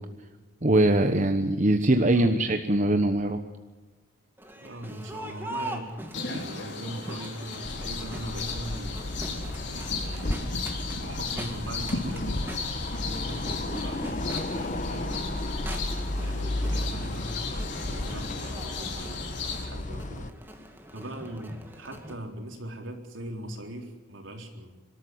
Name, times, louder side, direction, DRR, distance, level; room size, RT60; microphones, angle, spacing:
voice 1, 0.6-3.4, right 1 dB, 35° right, 6 dB, 1.1 m, -22 dB
voice 2, 1.8-2.4 4.6-5.9 6.3-9.0 9.6-10.6 10.9-12.5 12.8-15.4 16.2-20.3 20.9-24.7, right 1 dB, 70° right, 3 dB, 4.0 m, -40 dB
Crowd, 4.4-22.1, right 1 dB, 10° right, 2.2 m, -42 dB
sound 1, 6.1-19.7, left 4 dB, 60° left, 3.9 m, -36 dB
sound 2, 7.6-20.3, left 1 dB, 40° left, 0.9 m, -33 dB
25.5 x 13.0 x 9.4 m, 1.3 s
head